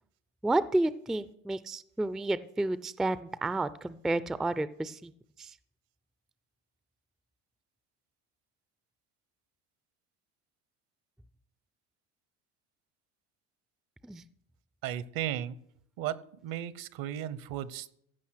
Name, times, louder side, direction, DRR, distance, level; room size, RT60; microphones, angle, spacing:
voice 1, 0.4-5.1 5.4-5.5 14.0-14.2, right 2 dB, ahead, 15 dB, 0.3 m, -31 dB
voice 2, 14.8-15.6 16.0-16.2 16.4-17.9, right 11 dB, 65° right, 17 dB, 0.9 m, -35 dB
15.0 x 5.6 x 6.4 m, 0.70 s
supercardioid pair, 85°, 37 cm